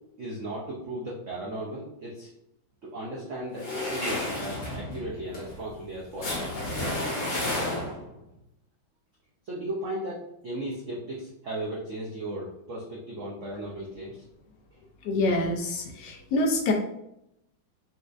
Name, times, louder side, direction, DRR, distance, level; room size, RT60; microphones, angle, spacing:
voice 1, 0.2-2.3 2.8-6.5 9.4-14.2 14.7-14.8, right 1 dB, 90° right, -4 dB, 0.6 m, -36 dB
sound 1, 3.6-8.2, left 1 dB, 50° left, 1.6 m, -32 dB
voice 2, 15.0-16.7, left 2 dB, 75° left, 1 dB, 1.1 m, -26 dB
4.2 x 2.4 x 2.4 m, 0.81 s
omnidirectional pair, 2.1 m